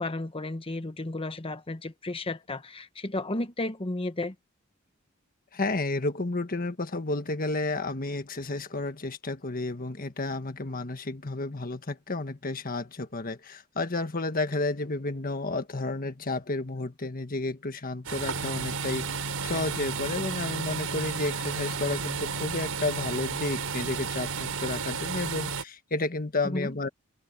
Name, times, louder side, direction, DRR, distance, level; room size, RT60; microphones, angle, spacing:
voice 1, 0.0-4.3 26.4-26.7, left 2 dB, 25° left, 1.1 m, -33 dB
voice 2, 5.5-26.9, left 2 dB, 40° left, 1.5 m, -31 dB
sound 1, 18.0-25.6, right 5 dB, 85° right, 5.1 m, -32 dB
head